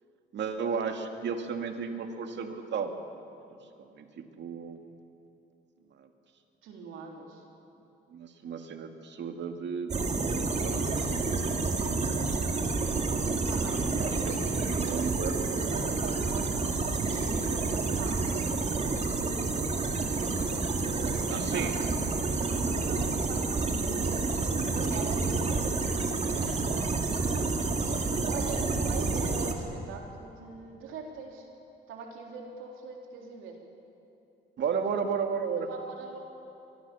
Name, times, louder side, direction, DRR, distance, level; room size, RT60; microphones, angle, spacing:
voice 1, 0.3-2.9 3.8-4.8 5.9-6.1 8.1-9.9 10.6-11.9 13.9-15.6 21.3-21.8 26.3-26.6 34.6-35.7, right 6 dB, 65° right, 5 dB, 2.2 m, -34 dB
voice 2, 6.6-7.4 13.5-13.8 14.1-18.5 20.8-22.0 22.3-25.6 27.8-31.5 31.9-33.5 35.7-36.2, right 4 dB, 90° right, 1 dB, 3.7 m, -42 dB
sound 1, 9.9-29.5, right 3 dB, 35° right, 2.3 m, -29 dB
24.0 x 21.0 x 7.1 m, 2.8 s
cardioid pair, 90°, 20 cm